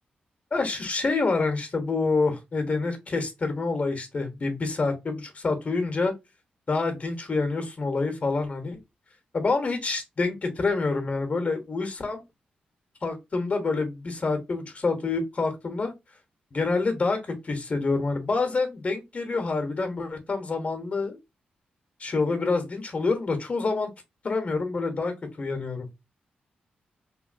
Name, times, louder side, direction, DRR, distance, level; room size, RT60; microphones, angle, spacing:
voice 1, 0.5-6.1 6.7-8.8 9.3-12.2 13.0-15.9 16.5-21.2 22.0-23.9 24.2-25.9, left 3 dB, 45° left, 0.9 m, -27 dB
3.1 x 2.6 x 2.5 m
cardioid pair, 65°, 3 cm